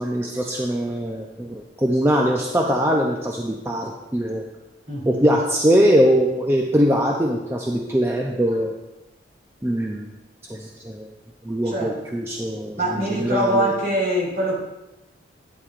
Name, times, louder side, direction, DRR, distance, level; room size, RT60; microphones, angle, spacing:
voice 1, 0.0-4.4 5.0-8.7 9.6-10.1 10.5-11.1 11.4-13.7, equal, 15° right, 0 dB, 0.5 m, -22 dB
voice 2, 4.9-5.2 11.6-12.0 12.8-14.5, right 1 dB, 50° right, -4 dB, 3.0 m, -23 dB
10.0 x 9.7 x 2.5 m, 0.99 s
head